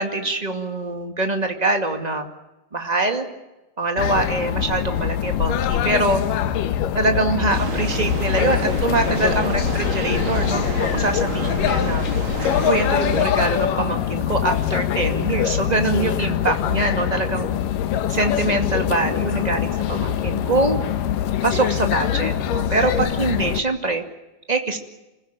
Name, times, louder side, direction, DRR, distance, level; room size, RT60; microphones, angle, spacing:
voice 1, 0.0-2.3 2.7-3.3 3.8-6.2 6.9-10.6 10.9-12.1 12.6-17.5 18.1-20.8 21.4-24.0 24.5-24.8, right 2 dB, 15° right, 5 dB, 1.6 m, -23 dB
sound 1, 4.0-23.6, left 10 dB, 75° left, 2.7 m, -23 dB
sound 2, 7.5-13.2, right 4 dB, 40° right, 2.4 m, -29 dB
27.5 x 15.5 x 9.0 m, 1.0 s
omnidirectional pair, 3.9 m